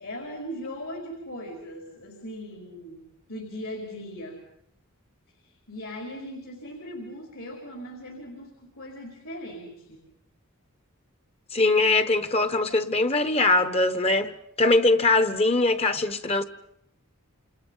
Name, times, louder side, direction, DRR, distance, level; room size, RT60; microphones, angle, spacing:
voice 1, 0.0-4.4 5.4-10.0, equal, 70° left, 4.9 m, -39 dB
voice 2, 11.5-16.4, left 2 dB, 30° left, 1.2 m, -22 dB
28.5 x 28.0 x 5.7 m
head